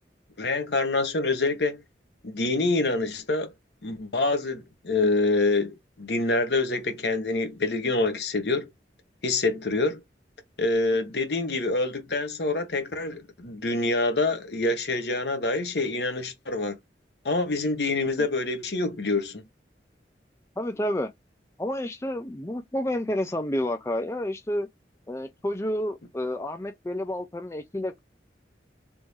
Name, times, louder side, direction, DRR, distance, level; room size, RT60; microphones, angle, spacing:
voice 1, 0.4-1.8 2.2-3.5 3.8-8.7 9.2-10.0 10.6-16.8 17.2-19.4, left 2 dB, 65° left, 1.0 m, -26 dB
voice 2, 20.6-21.1 21.6-24.7 25.1-28.0, left 1 dB, 15° left, 0.4 m, -30 dB
3.6 x 2.6 x 3.1 m
head